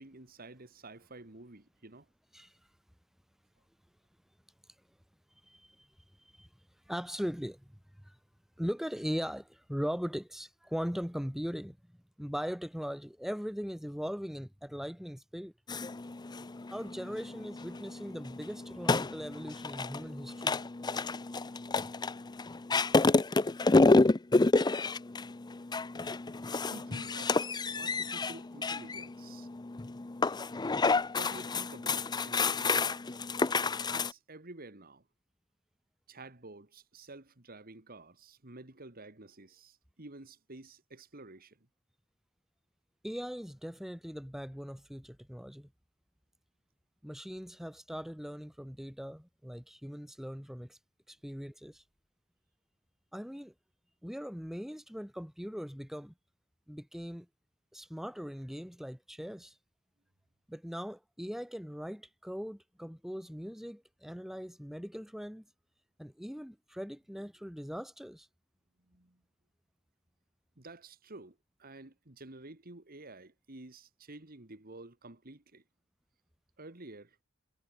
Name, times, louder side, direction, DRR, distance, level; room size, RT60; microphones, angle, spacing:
voice 1, 0.0-2.1 26.5-29.5 31.1-33.2 33.9-35.0 36.1-41.6 68.9-69.2 70.6-75.6 76.6-77.2, right 2 dB, 45° right, 2.1 m, -50 dB
voice 2, 5.5-5.9 6.4-6.5 6.9-7.8 8.0-8.1 8.6-11.8 12.2-15.5 16.7-20.5 43.0-45.7 47.0-50.8 51.1-51.8 53.1-53.5 54.0-56.1 56.7-57.3 57.7-59.5 60.5-65.4 66.0-68.3, equal, ahead, 2.2 m, -40 dB
sound 1, 15.7-34.1, left 3 dB, 20° left, 0.5 m, -30 dB
head